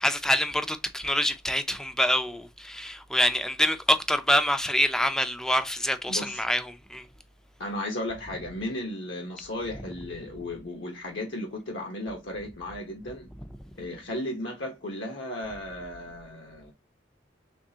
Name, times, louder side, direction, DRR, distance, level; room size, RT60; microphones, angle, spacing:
voice 1, 0.0-7.0, equal, 5° left, 0.4 m, -26 dB
voice 2, 6.1-6.4 7.6-13.3 13.8-16.7, left 1 dB, 70° left, 0.9 m, -35 dB
3.6 x 3.1 x 2.7 m
head